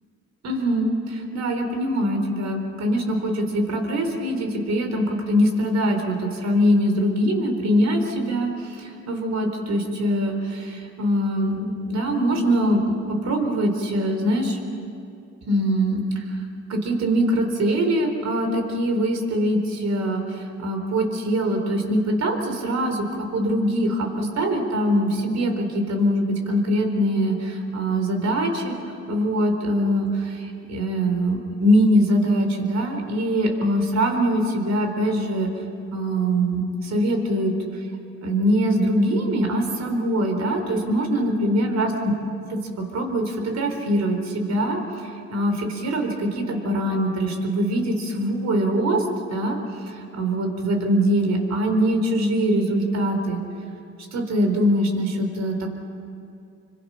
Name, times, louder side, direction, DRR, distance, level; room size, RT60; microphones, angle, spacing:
voice 1, 0.4-14.6 15.5-16.4 16.7-23.1 23.3-28.8 29.1-35.5 35.9-37.5 38.2-41.9 42.5-49.0 49.3-49.6 49.9-53.4 54.1-55.7, equal, 60° right, 4 dB, 4.1 m, -23 dB
27.0 x 25.0 x 5.8 m, 2.6 s
cardioid pair, 90°, 30 cm